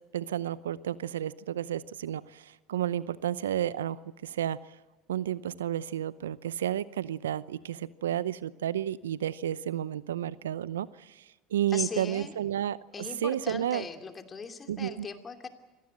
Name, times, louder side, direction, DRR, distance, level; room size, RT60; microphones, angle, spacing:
voice 1, 0.1-4.6 5.1-11.2 11.5-13.9 14.7-15.1, right 11 dB, 90° right, 19 dB, 0.7 m, -32 dB
voice 2, 11.7-12.4 12.9-15.5, left 5 dB, 30° left, 6 dB, 2.7 m, -39 dB
26.0 x 18.0 x 7.7 m, 1.1 s
hypercardioid pair, 80°, 0 cm